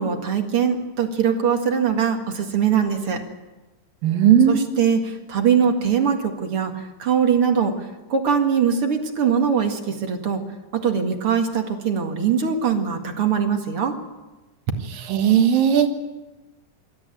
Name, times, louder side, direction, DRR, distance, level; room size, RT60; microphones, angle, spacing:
voice 1, 0.0-3.2 4.5-10.4 10.7-14.0, right 7 dB, 45° right, 4 dB, 2.5 m, -22 dB
voice 2, 4.0-4.7 15.1-15.9, right 8 dB, 90° right, 6 dB, 3.4 m, -16 dB
26.0 x 13.5 x 9.1 m, 1.1 s
omnidirectional pair, 3.9 m